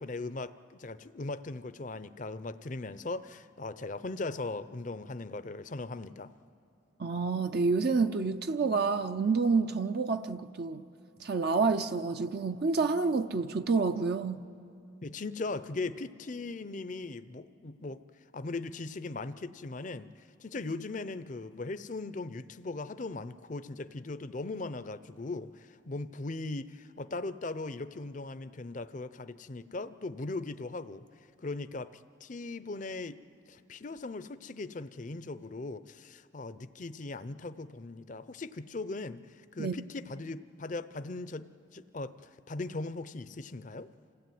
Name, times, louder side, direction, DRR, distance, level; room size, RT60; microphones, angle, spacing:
voice 1, 0.0-6.3 15.0-18.0 18.3-31.0 31.4-33.2 33.5-43.9, left 3 dB, 40° left, 0.6 m, -39 dB
voice 2, 7.0-10.8 11.2-14.5 39.6-39.8, right 4 dB, 50° right, 0.5 m, -28 dB
27.0 x 17.0 x 9.3 m
head